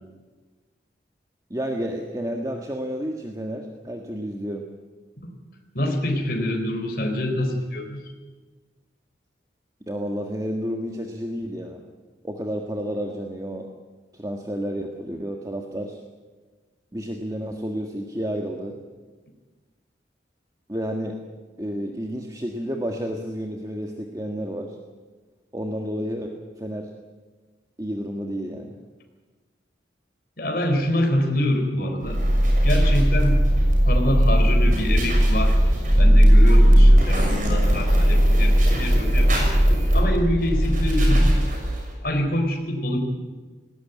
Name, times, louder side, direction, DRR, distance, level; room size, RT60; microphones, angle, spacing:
voice 1, 1.5-4.7 9.9-11.8 12.2-13.7 14.1-16.0 16.9-18.8 20.7-21.2 21.6-24.8 25.5-26.9 27.8-28.7, equal, 20° right, 2 dB, 1.6 m, -30 dB
voice 2, 5.7-8.0 30.4-32.2 32.6-33.4 33.8-35.6 35.9-39.5 39.9-41.4 42.0-43.0, left 1 dB, 55° left, 3 dB, 4.2 m, -25 dB
sound 1, 32.0-41.9, equal, 45° right, 6.0 m, -17 dB
19.5 x 17.5 x 9.4 m, 1.3 s
head